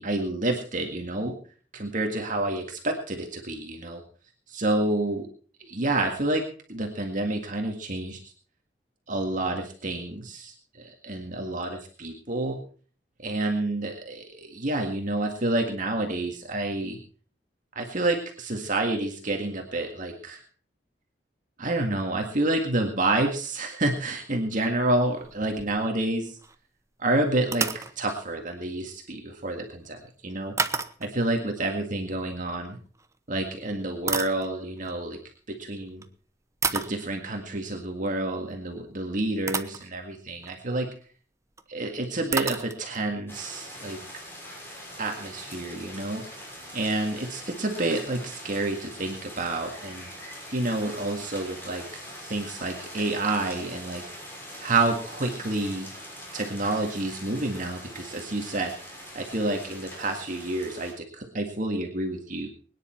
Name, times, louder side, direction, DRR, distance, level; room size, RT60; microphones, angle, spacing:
voice 1, 0.0-1.4 1.7-4.0 4.5-5.3 5.6-8.3 9.1-12.6 13.2-17.0 17.8-20.4 21.6-26.4 27.0-30.5 31.0-32.8 33.3-35.2 35.5-36.0 36.7-40.9 41.7-44.0 45.0-46.4 46.7-50.1 50.5-51.9 52.2-54.0 54.6-55.9 56.3-62.5, right 2 dB, 45° right, 3 dB, 1.9 m, -29 dB
sound 1, 25.0-26.1 26.4-26.6 27.4-27.9 30.6-31.3 32.9-33.1 33.7-34.9 35.9-36.1 36.6-37.0 38.9-39.0 39.5-39.9 40.3-40.6 41.6-41.7 41.9-42.0 42.3-43.1, right 4 dB, 15° right, 0.9 m, -31 dB
sound 2, 43.3-60.9, equal, 15° left, 6.5 m, -43 dB
22.5 x 10.0 x 4.4 m, 0.43 s
head